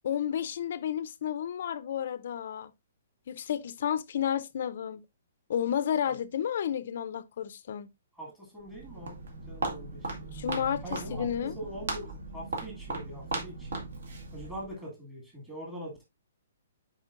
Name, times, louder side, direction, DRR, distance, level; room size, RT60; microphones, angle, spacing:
voice 1, 0.0-2.7 3.3-5.0 5.5-7.9 10.3-11.6, left 9 dB, 50° left, 0.4 m, -31 dB
voice 2, 8.1-10.3 10.8-13.8 14.3-16.0, right 1 dB, 10° right, 1.8 m, -43 dB
Walk footsteps, 8.6-14.8, right 3 dB, 70° right, 2.2 m, -37 dB
9.6 x 4.3 x 2.4 m
hypercardioid pair, 175°, 0 cm